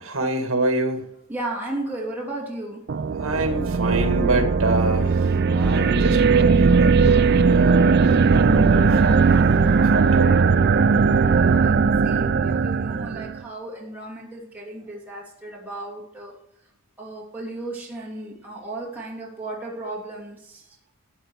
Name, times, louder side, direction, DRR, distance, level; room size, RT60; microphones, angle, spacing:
voice 1, 0.1-1.0 3.2-9.3 9.8-10.4, right 2 dB, 65° right, 5 dB, 2.1 m, -26 dB
voice 2, 1.3-2.8 5.6-5.7 8.3-9.9 11.2-16.3 17.0-20.6, right 2 dB, 10° right, -5 dB, 2.9 m, -35 dB
sound 1, 2.9-13.4, right 5 dB, 45° right, 0.4 m, -18 dB
14.0 x 8.0 x 4.7 m, 0.73 s
head